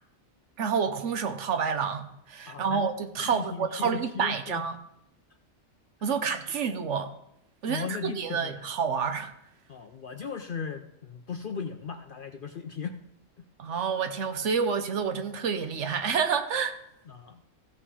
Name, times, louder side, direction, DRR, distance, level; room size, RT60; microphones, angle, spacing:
voice 1, 0.6-4.8 6.0-7.1 7.6-9.3 13.6-16.8, right 6 dB, 65° right, 8 dB, 1.1 m, -29 dB
voice 2, 2.5-2.8 3.2-4.6 7.7-8.6 9.7-13.0 17.1-17.4, left 6 dB, 55° left, 7 dB, 0.6 m, -37 dB
15.0 x 5.7 x 4.8 m, 0.78 s
omnidirectional pair, 1.4 m